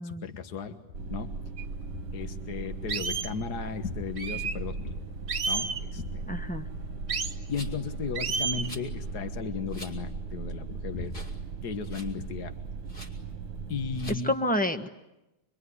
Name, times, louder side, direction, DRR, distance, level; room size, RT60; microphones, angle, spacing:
voice 1, 0.0-1.4 2.1-5.0 5.5-6.2 7.5-12.6 13.7-14.3, left 5 dB, 65° left, 8 dB, 2.0 m, -35 dB
sound 1, 0.9-14.2, right 4 dB, 75° right, 1.8 m, -38 dB
sound 2, 1.6-1.7 2.2-2.3 2.9-3.3 4.2-4.6 5.3-5.8 7.1-7.4 8.1-8.7, right 5 dB, 45° right, 1.8 m, -31 dB
voice 2, 6.3-6.7 14.1-14.9, left 1 dB, 5° left, 6 dB, 1.1 m, -29 dB
Rattle, 7.5-7.9 8.6-8.9 9.7-10.0 10.4-10.5 11.1-11.4 11.7-12.1 12.9-13.1 13.9-14.2, left 1 dB, 50° left, 3.9 m, -45 dB
25.0 x 24.5 x 9.7 m, 0.96 s
omnidirectional pair, 1.9 m